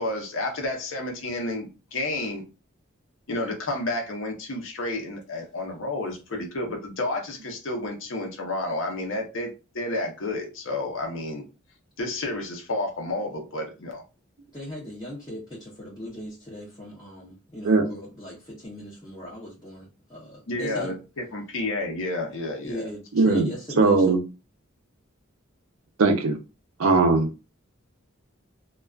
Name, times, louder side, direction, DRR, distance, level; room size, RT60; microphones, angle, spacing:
voice 1, 0.0-2.4 3.3-11.5 12.0-14.0 20.5-22.9, left 2 dB, 70° left, 0.7 m, -31 dB
voice 2, 14.5-20.9 22.6-24.2, left 1 dB, 20° left, 0.6 m, -38 dB
voice 3, 23.1-23.5 23.8-24.2 26.0-26.4 26.8-27.3, right 3 dB, 85° right, 0.5 m, -19 dB
2.3 x 2.2 x 2.3 m
head